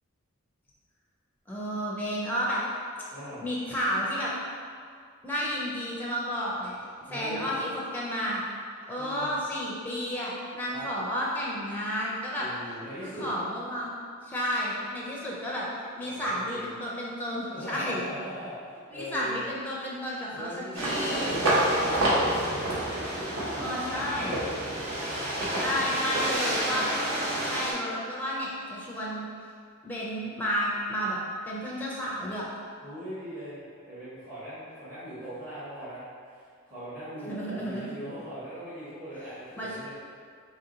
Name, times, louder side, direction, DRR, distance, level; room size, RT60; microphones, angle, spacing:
voice 1, 1.5-2.6 3.4-4.3 5.2-6.8 7.1-8.4 8.9-12.5 13.0-13.9 14.2-15.7 16.0-18.0 18.9-21.4 23.5-24.3 25.5-26.8 27.4-29.3 29.8-31.2 31.5-32.5 37.3-37.9 39.5-39.7, equal, 10° left, -5 dB, 0.4 m, -32 dB
voice 2, 3.1-3.4 7.1-7.5 9.0-9.4 10.7-10.9 12.4-13.3 16.0-16.7 17.5-19.4 20.3-22.2 22.5-24.4 25.7-26.3 32.8-39.9, equal, 35° right, -15 dB, 1.1 m, -40 dB
sound 1, 20.7-27.7, right 1 dB, 65° right, 0.8 m, -28 dB
2.9 x 2.8 x 3.8 m, 2.2 s
head